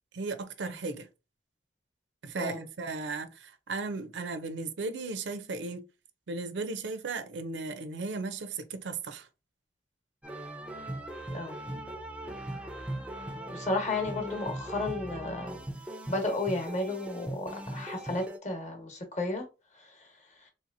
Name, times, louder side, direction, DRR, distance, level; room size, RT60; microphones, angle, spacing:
voice 1, 0.1-1.1 2.2-5.8 6.3-9.3, right 3 dB, 85° right, 0.5 m, -36 dB
sound 1, 10.2-18.4, right 1 dB, 5° right, 0.3 m, -39 dB
voice 2, 13.5-15.6 16.1-19.4 19.8-20.1, left 2 dB, 40° left, 0.9 m, -33 dB
3.3 x 2.8 x 2.5 m
head